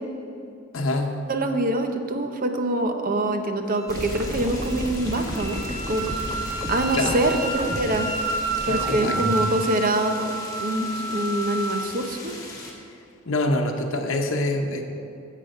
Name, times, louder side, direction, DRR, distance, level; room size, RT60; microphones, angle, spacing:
voice 1, 0.7-1.2 6.9-7.3 8.6-9.2 13.3-14.8, left 2 dB, 70° left, 2 dB, 0.9 m, -25 dB
voice 2, 1.3-5.6 5.9-6.1 6.7-8.1 8.7-10.3 10.6-12.3, right 1 dB, 45° right, 6 dB, 0.8 m, -25 dB
Wind instrument woodwind instrument, 3.7-11.9, right 2 dB, 60° right, 2.1 m, -31 dB
sound 1, 3.9-12.7, left 2 dB, 15° left, 1.5 m, -40 dB
sound 2, 3.9-9.5, equal, 20° right, 1.0 m, -32 dB
10.0 x 7.5 x 5.4 m, 2.6 s
head